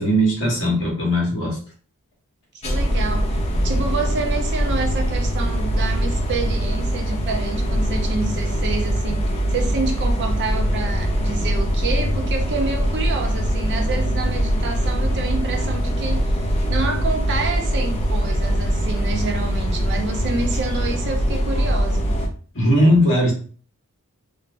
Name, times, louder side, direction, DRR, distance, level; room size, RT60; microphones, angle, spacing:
voice 1, 0.0-1.6 22.5-23.3, equal, 55° left, -4 dB, 1.3 m, -18 dB
sound 1, 2.6-22.3, equal, 30° left, 0.4 m, -22 dB
voice 2, 2.6-16.2 16.7-22.1, right 3 dB, 50° right, 2 dB, 0.6 m, -28 dB
3.0 x 2.0 x 2.6 m, 0.41 s
head